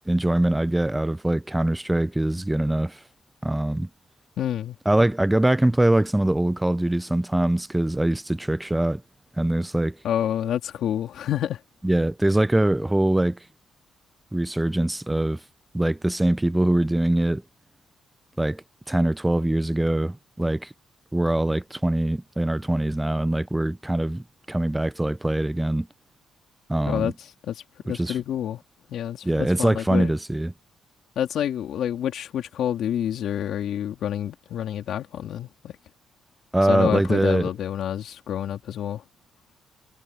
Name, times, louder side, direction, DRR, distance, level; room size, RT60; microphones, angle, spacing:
voice 1, 0.1-3.0 3.4-3.9 4.9-9.0 9.4-10.0 11.8-13.4 14.3-15.4 15.7-17.4 18.4-20.7 21.1-25.9 26.7-27.1 27.9-28.2 29.2-30.5 36.5-37.5, right 1 dB, 10° right, 0.7 m, -23 dB
voice 2, 4.4-4.8 10.0-11.6 26.9-27.6 27.9-28.6 28.9-30.1 31.1-35.8 36.7-39.0, left 10 dB, 70° left, 3.1 m, -28 dB
cardioid pair, 90°, 0 cm